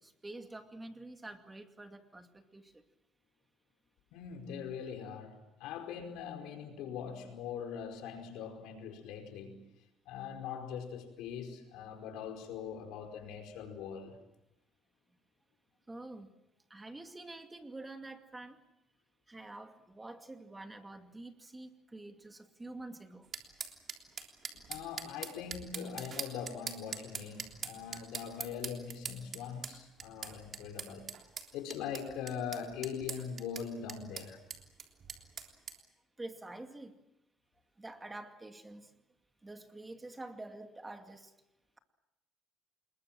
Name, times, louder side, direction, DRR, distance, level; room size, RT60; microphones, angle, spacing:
voice 1, 0.0-2.8 15.9-16.3 16.7-18.6 19.3-23.3 36.2-37.0 37.8-38.9 39.4-41.3, right 2 dB, 15° right, 6 dB, 2.3 m, -47 dB
voice 2, 4.1-9.6 10.0-14.2 24.5-31.1 31.5-34.4, left 7 dB, 85° left, 4 dB, 4.9 m, -42 dB
sound 1, 23.3-35.8, right 6 dB, 45° right, 3.4 m, -43 dB
27.0 x 21.5 x 7.6 m, 0.92 s
cardioid pair, 105°, 0 cm